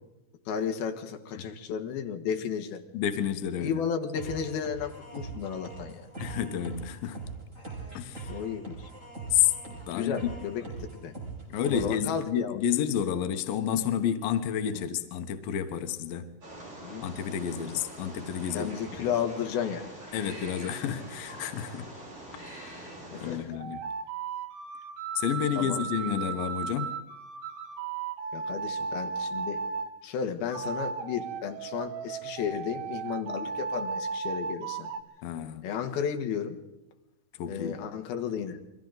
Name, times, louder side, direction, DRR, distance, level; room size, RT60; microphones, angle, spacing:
voice 1, 0.5-2.8 3.6-6.1 8.3-8.9 10.0-10.7 10.9-11.1 11.7-12.6 14.7-14.9 16.8-17.1 18.5-19.9 23.1-23.6 25.6-25.9 28.3-29.6 30.0-34.9 35.6-36.6 37.5-38.6, left 7 dB, 65° left, 2.7 m, -33 dB
voice 2, 2.9-3.8 6.2-7.2 7.9-8.4 9.3-10.3 11.5-16.3 17.0-19.0 20.1-21.9 22.3-22.9 23.2-23.8 25.2-27.0 35.2-35.6 37.4-37.8, left 9 dB, 85° left, 2.0 m, -30 dB
sound 1, 4.1-12.1, right 4 dB, 15° right, 5.8 m, -42 dB
Wild animals, 16.4-23.4, right 1 dB, 30° right, 9.0 m, -44 dB
sound 2, 23.5-29.9 30.5-35.0, right 5 dB, 75° right, 3.8 m, -35 dB
29.5 x 23.0 x 3.9 m
omnidirectional pair, 5.8 m